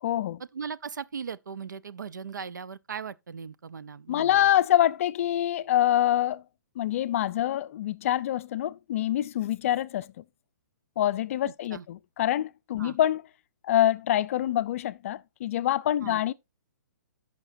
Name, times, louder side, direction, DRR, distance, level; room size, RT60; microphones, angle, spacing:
voice 1, 0.0-0.4 4.1-6.4 6.8-10.2 11.0-13.2 13.6-16.3, left 12 dB, 45° left, 0.4 m, -25 dB
voice 2, 0.5-4.5 11.5-11.9 12.8-13.0 16.0-16.2, right 6 dB, 80° right, 0.6 m, -38 dB
14.5 x 5.8 x 2.5 m
hypercardioid pair, 135°, 10 cm